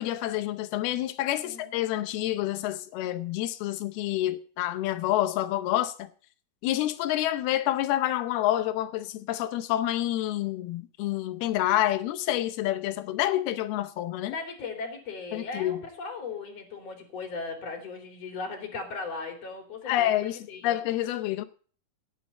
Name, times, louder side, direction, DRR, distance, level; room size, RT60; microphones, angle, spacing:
voice 1, 0.0-6.1 6.6-14.4 15.3-15.8 19.9-20.4 20.6-21.4, left 13 dB, 90° left, 2.9 m, -28 dB
voice 2, 1.4-1.7 14.2-20.8, left 4 dB, 45° left, 3.8 m, -38 dB
17.0 x 9.8 x 4.1 m
omnidirectional pair, 4.3 m